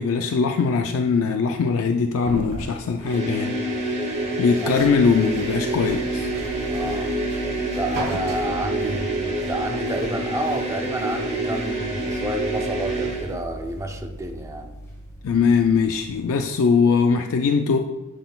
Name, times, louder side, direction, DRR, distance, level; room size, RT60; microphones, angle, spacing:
voice 1, 0.0-3.6 4.4-6.3 15.2-17.8, left 5 dB, 65° left, 5 dB, 0.4 m, -21 dB
sound 1, 2.2-8.4, right 1 dB, 60° right, 1.7 m, -37 dB
sound 2, 3.0-13.3, right 1 dB, 30° right, 1.2 m, -27 dB
sound 3, 4.8-16.4, right 1 dB, 15° left, 1.3 m, -40 dB
voice 2, 6.7-7.1 7.7-14.7, right 1 dB, 15° right, 4 dB, 0.6 m, -29 dB
10.5 x 4.0 x 2.3 m, 1.1 s
head